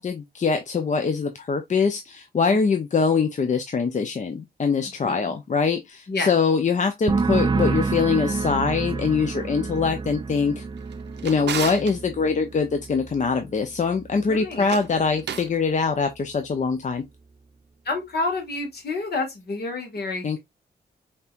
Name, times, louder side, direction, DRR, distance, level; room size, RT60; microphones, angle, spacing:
voice 1, 0.0-10.6 11.2-17.1 20.2-20.4, left 5 dB, 45° left, 0.6 m, -23 dB
voice 2, 5.0-5.3 6.1-6.3 9.6-9.7 14.3-14.7 17.8-20.4, left 3 dB, 65° left, 1.7 m, -29 dB
sound 1, 7.1-14.5 14.8-15.4, right 4 dB, 25° right, 0.4 m, -29 dB
Drawer open or close, 10.8-12.0 14.5-15.6, right 8 dB, 80° right, 0.6 m, -33 dB
5.2 x 2.9 x 2.3 m
cardioid pair, 80°, 18 cm